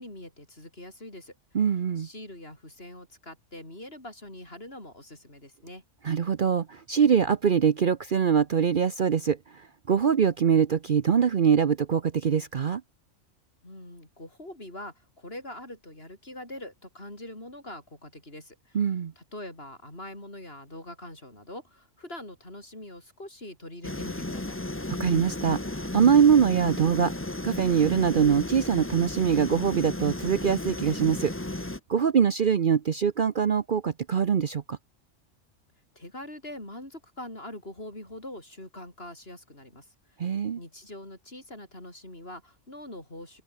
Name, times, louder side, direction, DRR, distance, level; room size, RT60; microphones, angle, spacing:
voice 1, 0.0-1.3 2.0-5.8 13.6-18.8 19.2-24.6 35.9-39.9 40.6-43.4, left 1 dB, 50° left, 8.4 m, -43 dB
voice 2, 1.5-2.1 6.0-9.4 9.9-12.8 18.7-19.1 25.0-27.1 27.4-31.3 31.9-34.8 40.2-40.6, right 7 dB, 50° right, 0.8 m, -23 dB
sound 1, 23.8-31.8, left 1 dB, 10° left, 1.0 m, -34 dB
open air
omnidirectional pair, 1.3 m